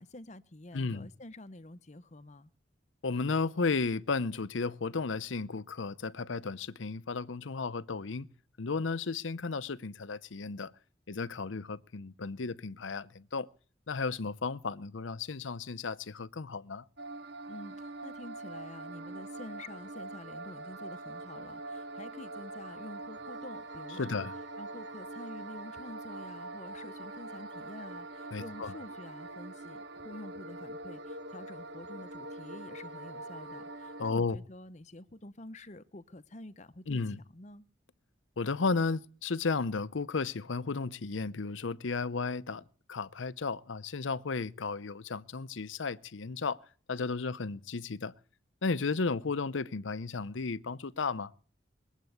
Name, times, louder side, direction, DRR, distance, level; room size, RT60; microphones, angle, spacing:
voice 1, 0.0-2.5 17.5-24.3 24.6-37.6, left 1 dB, 35° left, 0.8 m, -48 dB
voice 2, 0.7-1.1 3.0-8.3 8.6-10.7 11.1-13.5 13.9-16.8 24.0-24.3 28.3-28.7 34.0-34.4 36.9-37.2 38.4-42.6 42.9-48.1 48.6-51.3, left 4 dB, 85° left, 0.7 m, -34 dB
sound 1, 17.0-34.1, right 2 dB, 60° right, 1.1 m, -43 dB
21.5 x 8.2 x 8.0 m
head